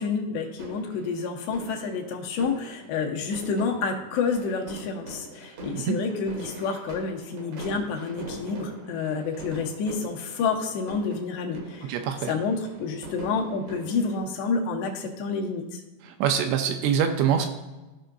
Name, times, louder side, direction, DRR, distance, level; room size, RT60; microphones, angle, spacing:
voice 1, 0.0-12.0 12.2-15.8, left 4 dB, 80° left, 1 dB, 3.1 m, -29 dB
sound 1, 0.6-14.2, right 1 dB, 70° right, 1.4 m, -43 dB
voice 2, 11.8-12.3 16.2-17.5, right 8 dB, 85° right, 6 dB, 2.8 m, -24 dB
15.5 x 5.6 x 2.6 m, 1.1 s
omnidirectional pair, 5.0 m